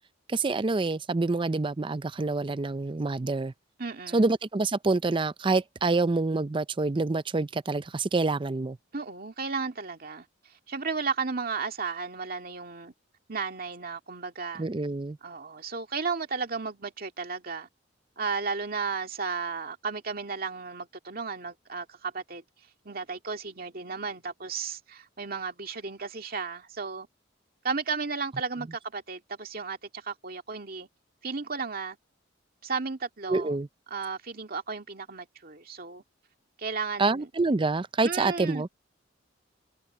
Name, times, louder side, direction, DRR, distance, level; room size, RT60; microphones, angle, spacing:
voice 1, 0.3-3.5 4.1-8.8 14.6-15.2 33.3-33.7 37.0-38.7, right 3 dB, 25° right, 0.5 m, -27 dB
voice 2, 3.8-4.3 8.9-10.3 10.7-12.9 13.3-14.6 15.2-17.7 18.2-22.4 22.9-27.1 27.6-30.9 31.2-32.0 32.6-33.6 33.9-36.0 36.6-37.3 38.0-38.6, right 5 dB, 50° right, 2.2 m, -34 dB
head